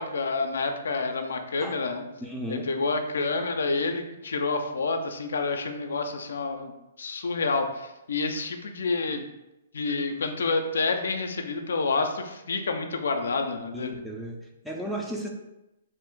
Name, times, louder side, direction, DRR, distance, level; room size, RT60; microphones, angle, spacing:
voice 1, 0.0-2.0 2.5-9.3 9.7-13.9, left 3 dB, 80° left, 6 dB, 0.4 m, -28 dB
voice 2, 2.2-2.7 13.7-15.3, right 1 dB, ahead, -1 dB, 0.4 m, -34 dB
2.5 x 2.4 x 3.6 m, 0.93 s
hypercardioid pair, 140°, 0 cm